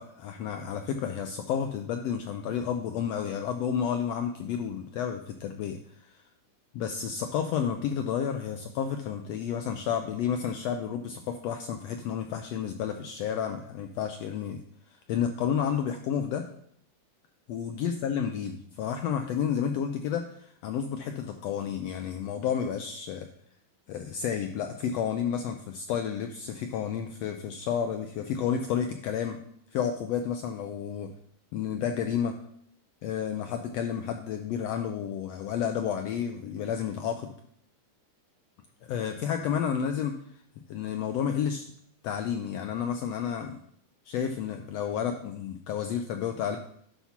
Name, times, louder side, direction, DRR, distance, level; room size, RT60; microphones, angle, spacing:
voice 1, 0.0-5.8 6.1-6.2 6.7-14.6 15.1-16.4 17.5-23.3 23.9-29.4 29.7-31.1 31.5-32.4 33.0-37.3 38.9-40.1 40.7-41.6 42.0-43.6 44.1-46.6, left 8 dB, 80° left, 5 dB, 1.4 m, -31 dB
11.5 x 4.4 x 5.7 m, 0.66 s
omnidirectional pair, 3.6 m